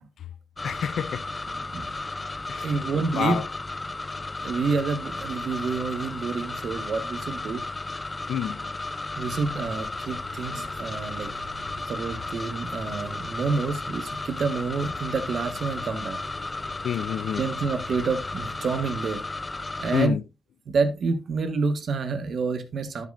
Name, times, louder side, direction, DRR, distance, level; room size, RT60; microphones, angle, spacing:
voice 1, 0.6-1.3 2.5-2.7 3.1-3.5 8.3-8.7 16.8-17.4 19.9-20.2, left 9 dB, 75° left, 0.4 m, -28 dB
sound 1, 0.6-20.1, left 2 dB, 20° left, 0.5 m, -34 dB
voice 2, 2.6-3.4 4.4-7.6 9.2-11.3 11.9-16.2 17.4-19.2 19.8-20.2 20.7-23.1, right 4 dB, 60° right, 1.4 m, -28 dB
sound 2, 9.3-18.6, left 1 dB, 60° left, 3.0 m, -48 dB
12.0 x 7.4 x 2.5 m
cardioid pair, 100°, 0 cm